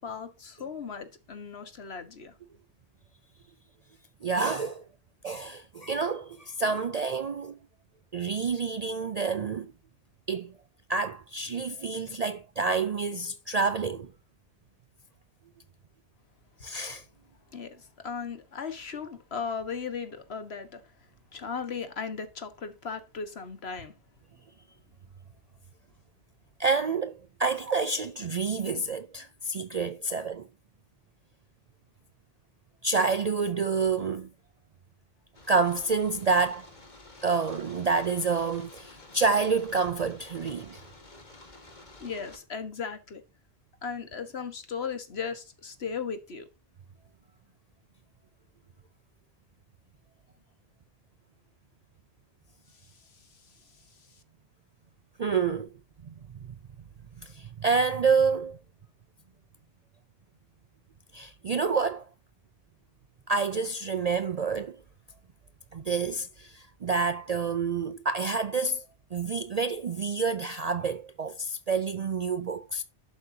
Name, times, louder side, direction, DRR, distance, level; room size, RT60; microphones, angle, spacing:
voice 1, 0.0-2.3 17.5-20.8 21.3-23.9 42.0-43.2 43.8-46.5, left 6 dB, 60° left, 1.6 m, -37 dB
voice 2, 4.2-4.8 5.2-7.6 8.1-9.7 10.3-10.5 10.9-14.1 16.6-17.0 26.6-30.5 32.8-34.3 35.5-36.7 37.2-40.8 55.2-55.7 56.0-56.1 57.2-58.6 61.1-62.0 63.3-64.8 65.7-68.8 69.1-72.8, right 4 dB, 50° right, 0.4 m, -28 dB
sound 1, 35.3-42.4, left 2 dB, 40° left, 1.9 m, -51 dB
11.5 x 7.6 x 2.8 m
omnidirectional pair, 1.2 m